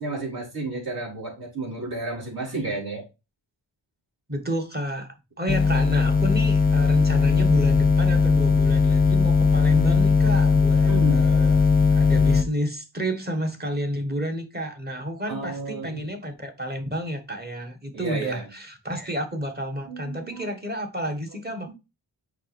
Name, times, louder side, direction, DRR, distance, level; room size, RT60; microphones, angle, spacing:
voice 1, 0.0-3.0 10.9-11.3 15.3-16.1 17.9-18.4 19.9-20.5 21.5-21.7, right 2 dB, 55° right, 4.4 m, -32 dB
voice 2, 4.3-11.7 11.9-21.7, equal, 25° right, 1.4 m, -30 dB
sound 1, 5.5-12.4, left 5 dB, 20° left, 0.6 m, -19 dB
6.6 x 5.1 x 3.4 m
wide cardioid pair, 165°, 42 cm